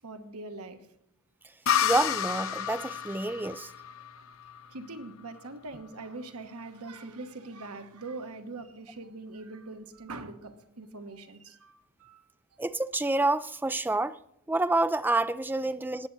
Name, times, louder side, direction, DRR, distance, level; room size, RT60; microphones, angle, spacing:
voice 1, 0.0-0.9 4.7-12.3 15.6-15.8, right 3 dB, 85° right, 1.2 m, -42 dB
sound 1, 1.7-5.2, left 9 dB, 60° left, 0.7 m, -31 dB
voice 2, 1.8-3.7 12.6-14.2 14.5-16.1, right 2 dB, 10° right, 0.3 m, -28 dB
19.0 x 8.3 x 4.0 m
head